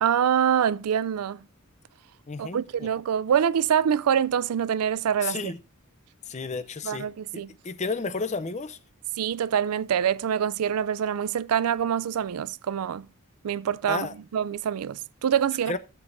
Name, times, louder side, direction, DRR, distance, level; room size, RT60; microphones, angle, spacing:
voice 1, 0.0-1.4 2.4-5.5 6.8-7.5 9.2-13.1 13.4-15.8, right 8 dB, 85° right, 0.4 m, -25 dB
voice 2, 2.3-2.9 5.2-5.6 6.3-8.8 13.9-14.1 15.7-15.8, left 4 dB, 30° left, 0.5 m, -32 dB
17.0 x 7.0 x 2.6 m
head